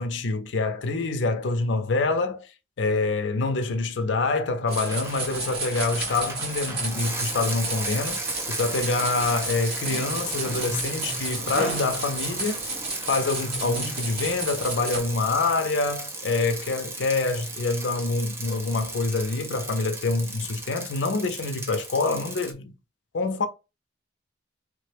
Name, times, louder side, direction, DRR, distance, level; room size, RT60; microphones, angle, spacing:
voice 1, 0.0-2.5 2.8-12.6 13.0-22.7 23.1-23.5, left 3 dB, 85° left, 0.5 m, -26 dB
Bicycle, 4.7-22.5, right 2 dB, 15° right, 0.4 m, -36 dB
sound 1, 4.7-15.0, right 3 dB, 60° right, 1.7 m, -32 dB
3.1 x 2.1 x 3.3 m
head